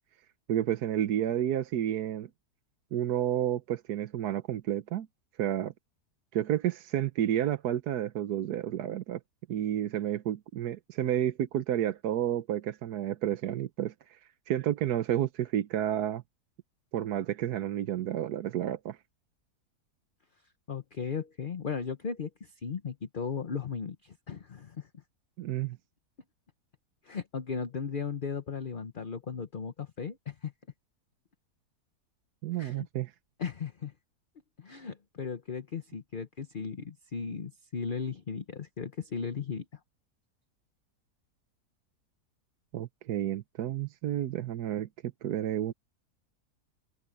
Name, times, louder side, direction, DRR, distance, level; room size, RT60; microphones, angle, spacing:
voice 1, 0.5-2.3 2.9-5.1 5.4-5.7 6.3-9.2 9.5-14.2 14.5-16.2 16.9-19.0 25.4-25.8 32.4-33.1 42.7-45.7, right 11 dB, 75° right, 1.4 m, -31 dB
voice 2, 20.7-24.9 27.0-30.5 32.6-32.9 33.4-33.9 34.6-39.6, left 6 dB, 40° left, 0.9 m, -36 dB
open air
omnidirectional pair, 1.7 m